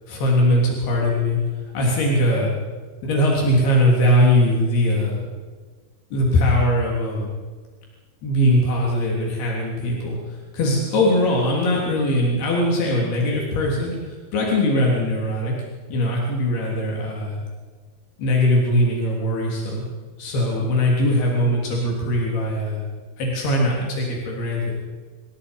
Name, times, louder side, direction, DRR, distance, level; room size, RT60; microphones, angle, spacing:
voice 1, 0.1-1.4 1.7-2.5 3.0-5.3 6.1-7.3 8.2-15.5 15.9-17.4 18.2-19.8 20.2-22.8 23.2-24.8, left 1 dB, 85° left, -3 dB, 5.5 m, -21 dB
26.5 x 22.0 x 5.5 m, 1.5 s
omnidirectional pair, 4.4 m